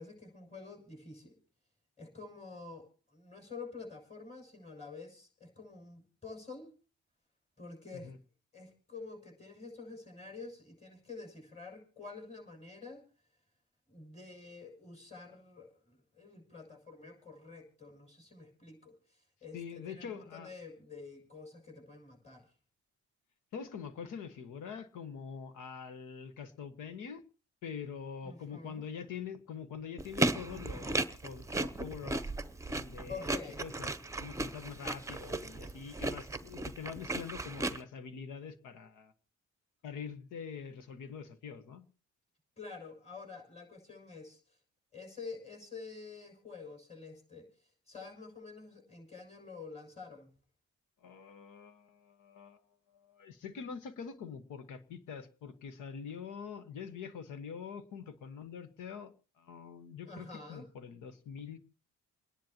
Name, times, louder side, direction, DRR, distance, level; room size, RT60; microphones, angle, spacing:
voice 1, 0.0-1.4 2.0-6.7 7.6-8.1 8.5-13.0 13.9-22.5 28.2-28.8 33.1-33.6 42.6-44.6 44.9-50.3 60.0-60.7, left 4 dB, 20° left, 2 dB, 6.8 m, -48 dB
voice 2, 19.5-20.5 23.5-27.2 27.6-32.2 32.7-33.9 34.2-39.1 39.8-41.9 51.0-52.6 52.9-61.6, left 6 dB, 85° left, 10 dB, 1.5 m, -45 dB
sound 1, 30.0-37.8, right 2 dB, 10° right, 0.8 m, -35 dB
28.5 x 10.5 x 3.0 m, 0.36 s
cardioid pair, 90°, 30 cm